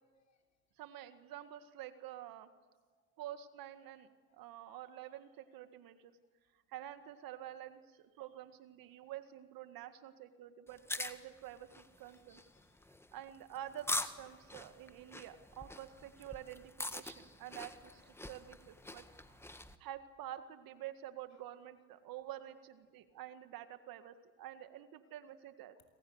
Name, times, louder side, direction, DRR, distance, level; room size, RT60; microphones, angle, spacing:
voice 1, 0.8-2.5 3.2-6.2 6.7-12.4 13.1-19.0 19.8-25.8, right 12 dB, 55° right, 9 dB, 1.9 m, -49 dB
sound 1, 10.7-19.8, left 1 dB, 5° left, 1.5 m, -44 dB
voice 2, 11.9-12.9 21.3-21.4 23.2-23.4 25.0-25.1 25.7-25.9, left 8 dB, 40° left, 7 dB, 7.5 m, -77 dB
27.5 x 26.0 x 8.0 m, 1.4 s
supercardioid pair, 90°, 41 cm